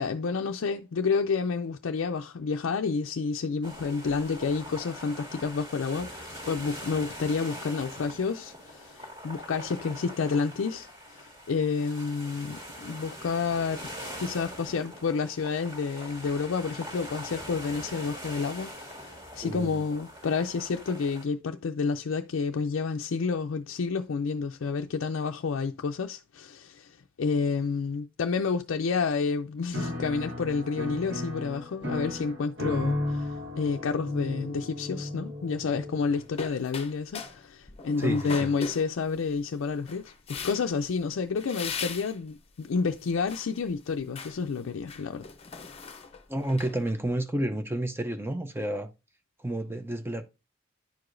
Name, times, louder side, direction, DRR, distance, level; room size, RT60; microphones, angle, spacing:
voice 1, 0.0-13.9 14.2-45.2, left 5 dB, 70° left, 0.4 m, -30 dB
sound 1, 3.6-21.2, equal, 25° right, 1.9 m, -43 dB
voice 2, 19.4-19.8 38.0-38.5 46.3-48.9 49.4-50.2, right 1 dB, 10° right, 0.6 m, -30 dB
Piano, 29.7-36.5, left 1 dB, 65° right, 2.1 m, -35 dB
sound 2, 36.1-37.4 37.7-39.3 39.9-40.9 41.4-42.2 42.7-43.6 43.9-44.4 44.8-46.9, left 5 dB, 30° left, 0.8 m, -39 dB
10.5 x 4.8 x 2.5 m
head